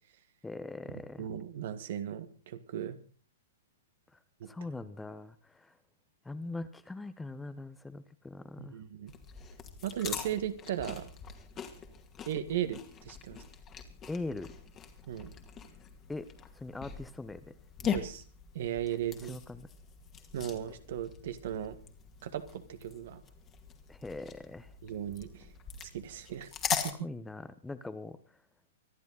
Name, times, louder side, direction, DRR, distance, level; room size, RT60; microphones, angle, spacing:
voice 1, 0.4-1.3 4.5-5.7 6.2-8.7 14.1-14.5 16.1-16.3 16.5-17.4 19.3-19.7 23.9-24.7 27.0-28.2, left 2 dB, 5° left, 12 dB, 1.0 m, -41 dB
voice 2, 1.2-3.0 4.4-4.5 8.6-9.1 9.8-11.1 12.3-13.4 15.1-15.3 17.8-18.2 18.5-19.4 20.3-21.8 22.2-23.2 24.8-25.5 25.8-26.9, right 10 dB, 55° right, 11 dB, 1.7 m, -37 dB
sound 1, 9.1-26.9, left 8 dB, 25° left, 2.2 m, -42 dB
25.0 x 11.0 x 4.1 m, 0.40 s
figure-of-eight pair, 115°, 0 cm